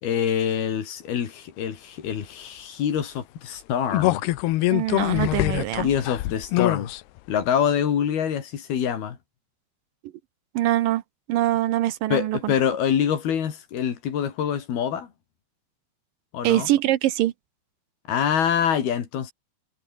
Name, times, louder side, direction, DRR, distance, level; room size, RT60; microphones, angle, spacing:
voice 1, 0.0-4.3 5.8-6.9 7.3-9.2 12.1-15.1 16.3-16.7 18.1-19.3, left 8 dB, 70° left, 4.7 m, -25 dB
sound 1, 3.9-7.0 7.4-7.5, left 17 dB, 90° left, 3.0 m, -23 dB
voice 2, 4.7-5.9 10.5-11.0 11.3-12.5 16.4-17.3, right 14 dB, 70° right, 2.3 m, -23 dB
omnidirectional pair, 4.6 m